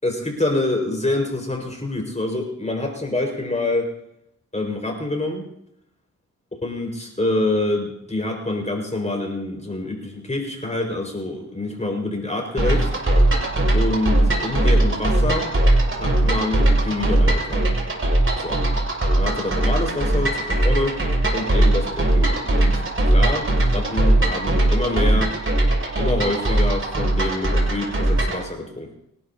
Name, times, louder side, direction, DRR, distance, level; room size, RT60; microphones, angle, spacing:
voice 1, 0.0-3.9 4.5-5.5 6.6-12.9 13.7-15.5 16.0-17.7 18.4-18.6 19.1-21.0 21.3-25.3 26.0-29.0, left 2 dB, 20° left, 1 dB, 5.5 m, -26 dB
sound 1, 12.6-28.4, right 1 dB, 40° right, 6.1 m, -19 dB
25.5 x 11.5 x 2.9 m, 0.78 s
cardioid pair, 55°, 33 cm